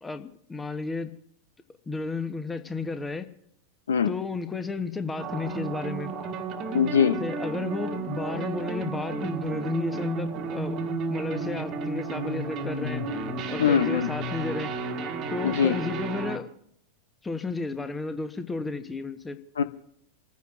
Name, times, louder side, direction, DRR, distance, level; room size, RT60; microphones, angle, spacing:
voice 1, 0.0-1.1 1.9-3.3 4.0-6.1 7.2-13.0 13.5-14.7 15.3-16.5 17.2-19.4, left 3 dB, 10° left, 9 dB, 1.1 m, -33 dB
sound 1, 5.2-16.4, right 3 dB, 35° right, 1.5 m, -32 dB
voice 2, 6.7-7.2 13.6-14.1 15.4-15.8 19.6-19.7, left 7 dB, 65° left, 13 dB, 0.7 m, -22 dB
29.5 x 15.0 x 2.6 m, 0.71 s
figure-of-eight pair, 90°, 0 cm